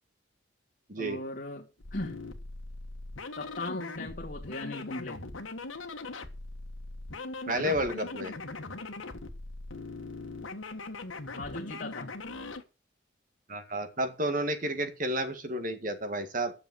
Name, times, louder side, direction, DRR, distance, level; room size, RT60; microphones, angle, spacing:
voice 1, 1.0-2.2 3.4-5.2 7.5-7.8 11.2-12.1, left 2 dB, 45° left, 2.3 m, -38 dB
sound 1, 1.8-12.6, left 3 dB, 90° left, 1.5 m, -40 dB
voice 2, 7.5-8.3 13.5-16.5, right 1 dB, 40° right, 1.9 m, -31 dB
10.5 x 6.8 x 7.7 m
head